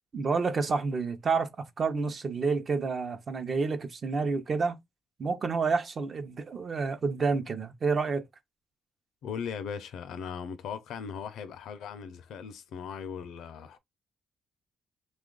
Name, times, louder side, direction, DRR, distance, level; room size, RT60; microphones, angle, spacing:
voice 1, 0.1-1.5 1.8-4.8 5.2-8.2, right 4 dB, 45° right, 0.7 m, -29 dB
voice 2, 9.2-13.8, left 7 dB, 80° left, 0.5 m, -38 dB
3.0 x 2.4 x 3.8 m
cardioid pair, 90°, 0 cm